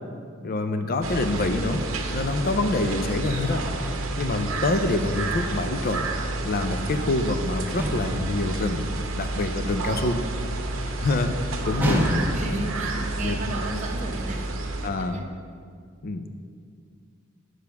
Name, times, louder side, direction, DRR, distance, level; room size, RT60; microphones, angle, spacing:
voice 1, 0.4-1.8 2.1-6.0 6.4-8.8 9.2-10.2 11.0-12.0 13.2-13.4 14.8-15.2 16.0-16.3, left 2 dB, 45° left, 7 dB, 0.5 m, -26 dB
sound 1, 1.0-14.9, right 2 dB, 70° right, 0.8 m, -30 dB
sound 2, 7.8-8.3 11.8-12.6, equal, 10° right, 1.1 m, -25 dB
voice 2, 11.6-14.4 15.0-15.2, right 1 dB, 35° right, 1 dB, 0.9 m, -34 dB
8.7 x 4.7 x 5.9 m, 2.2 s
head